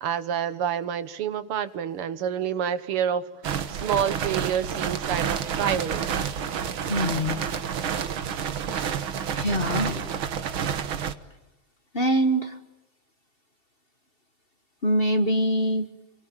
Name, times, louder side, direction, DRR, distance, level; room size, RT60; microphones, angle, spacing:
voice 1, 0.0-3.2 3.7-6.1, right 8 dB, 90° right, 13 dB, 2.2 m, -28 dB
sound 1, 3.4-11.1, right 8 dB, 70° right, 2.1 m, -29 dB
voice 2, 6.9-7.4 9.3-10.1 11.9-12.6 14.8-15.9, equal, 30° left, 8 dB, 1.3 m, -24 dB
29.0 x 23.0 x 9.0 m, 0.95 s
omnidirectional pair, 2.4 m